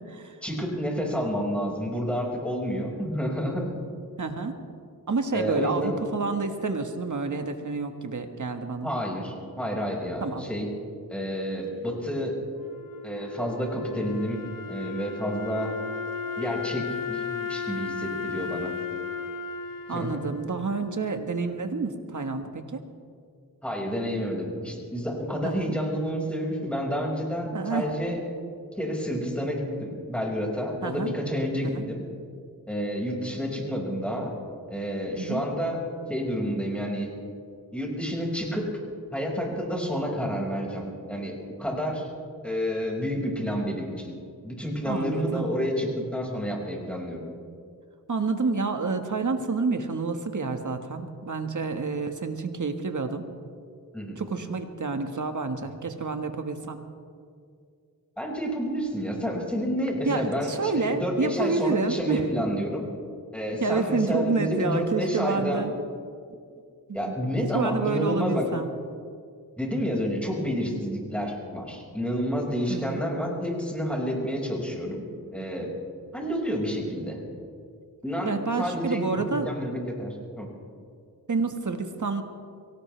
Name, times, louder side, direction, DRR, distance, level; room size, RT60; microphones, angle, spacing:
voice 1, 0.4-3.7 5.3-6.0 8.8-10.7 11.1-12.4 13.0-14.4 14.7-15.7 16.4-18.7 19.9-20.2 23.6-28.2 28.8-32.0 32.7-34.3 34.7-35.8 36.1-37.1 37.7-38.7 39.1-42.1 42.4-44.1 44.4-47.2 53.9-54.2 58.2-62.8 63.3-65.6 66.9-68.5 69.6-75.0 75.3-75.7 76.1-77.2 78.0-80.5, equal, 5° left, -2 dB, 5.7 m, -29 dB
voice 2, 4.2-4.5 5.1-8.9 10.2-10.5 19.9-22.8 25.4-25.8 27.5-27.9 30.8-31.1 31.6-31.9 35.2-35.4 44.8-45.5 48.1-53.3 54.2-56.8 60.0-62.3 63.6-65.7 66.9-67.1 67.5-68.7 72.7-73.0 78.2-79.5 81.3-82.2, right 4 dB, 50° right, 6 dB, 1.7 m, -29 dB
Wind instrument woodwind instrument, 12.5-21.6, left 5 dB, 60° left, 1.2 m, -35 dB
23.5 x 18.0 x 3.4 m, 2.2 s
cardioid pair, 50°, 37 cm